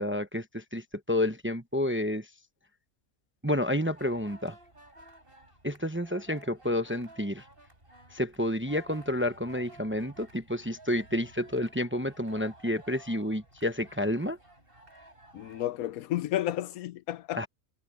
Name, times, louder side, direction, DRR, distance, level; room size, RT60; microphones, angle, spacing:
voice 1, 0.0-2.3 3.4-4.6 5.6-7.4 8.1-14.4 17.3-17.5, left 1 dB, 10° right, 0.7 m, -30 dB
sound 1, 3.8-15.6, right 2 dB, 40° right, 7.5 m, -54 dB
voice 2, 15.3-17.4, left 13 dB, 80° left, 1.1 m, -32 dB
omnidirectional pair, 1.5 m